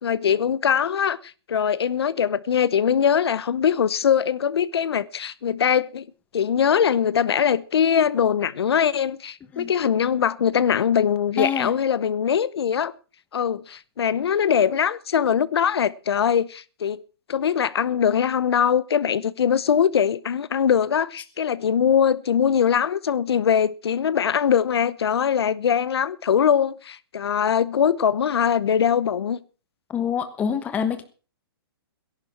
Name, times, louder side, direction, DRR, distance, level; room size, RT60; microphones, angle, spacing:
voice 1, 0.0-6.1 6.3-12.9 13.3-17.0 17.3-29.4, left 8 dB, 75° left, 0.9 m, -22 dB
voice 2, 11.4-11.7 29.9-31.0, left 7 dB, 10° left, 1.2 m, -26 dB
17.0 x 11.5 x 5.9 m
hypercardioid pair, 165°, 13 cm